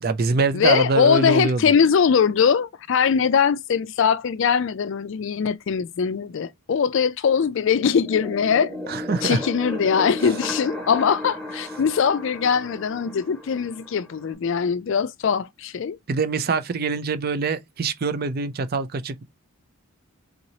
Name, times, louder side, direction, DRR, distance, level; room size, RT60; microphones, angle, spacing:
voice 1, 0.0-1.6 8.5-9.4 16.1-19.2, right 4 dB, 45° right, 0.4 m, -24 dB
voice 2, 0.5-8.7 9.2-16.0, left 6 dB, 55° left, 0.3 m, -21 dB
sound 1, 7.8-14.3, left 1 dB, 5° left, 1.5 m, -35 dB
3.8 x 3.0 x 2.7 m
head